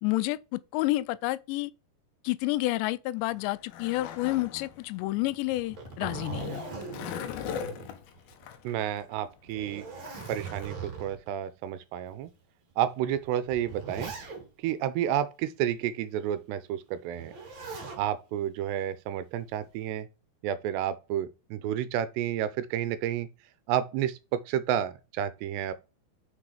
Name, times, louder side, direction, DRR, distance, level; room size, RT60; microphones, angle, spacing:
voice 1, 0.0-1.7 2.2-6.7, left 18 dB, 90° left, 2.8 m, -29 dB
Skateboard, 3.2-10.7, left 8 dB, 70° left, 2.6 m, -41 dB
Zipper (clothing), 5.5-8.4 8.8-8.9 9.4-11.3 12.1-12.2 13.1-14.7 17.1-18.0 19.4-19.9, right 4 dB, 35° right, 2.2 m, -40 dB
voice 2, 8.6-9.9 10.3-12.3 12.8-14.1 14.6-17.3 18.0-20.1 20.4-23.3 23.7-25.7, right 10 dB, 80° right, 2.7 m, -30 dB
6.5 x 6.1 x 4.9 m
omnidirectional pair, 5.0 m